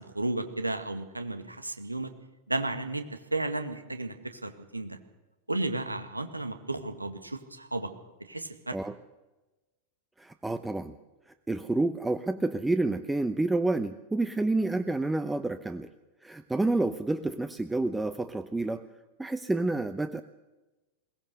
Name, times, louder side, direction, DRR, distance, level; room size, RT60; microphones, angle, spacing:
voice 1, 0.0-2.1 2.5-5.0 5.5-7.9 8.2-8.8, right 2 dB, 85° right, 8 dB, 1.9 m, -33 dB
voice 2, 10.2-10.9 11.3-15.9 16.2-18.8 19.2-20.2, right 2 dB, 5° right, 11 dB, 0.9 m, -29 dB
22.0 x 18.5 x 6.6 m, 1.1 s
figure-of-eight pair, 90°, 0 cm